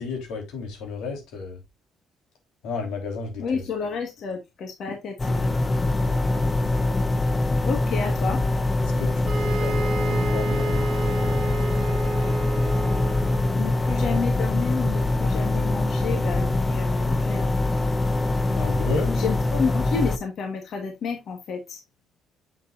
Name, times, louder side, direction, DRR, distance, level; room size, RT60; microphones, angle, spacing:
voice 1, 0.0-1.6 2.6-3.6 6.0-6.2 8.8-11.6 18.6-19.2, left 4 dB, 90° left, 3.3 m, -33 dB
voice 2, 3.4-5.5 7.7-8.4 13.6-17.5 19.2-21.8, left 5 dB, 45° left, 1.4 m, -30 dB
sound 1, 5.2-20.2, left 2 dB, 15° left, 0.6 m, -23 dB
sound 2, 9.2-13.6, right 4 dB, 45° right, 1.2 m, -31 dB
7.4 x 6.7 x 2.5 m
cardioid pair, 175°, 0 cm